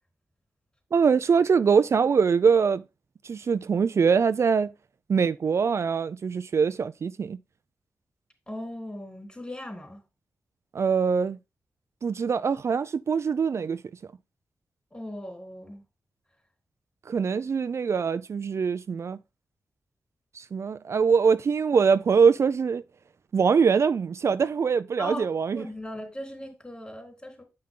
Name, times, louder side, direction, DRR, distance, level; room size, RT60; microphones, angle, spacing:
voice 1, 0.9-2.8 3.2-4.7 5.1-7.4 10.7-11.4 12.0-13.8 17.1-19.2 20.3-22.8 23.3-25.6, right 6 dB, 55° right, 0.4 m, -23 dB
voice 2, 8.5-10.0 14.9-15.8 25.0-27.4, left 1 dB, 20° left, 3.7 m, -38 dB
8.7 x 5.7 x 3.7 m
cardioid pair, 65°, 5 cm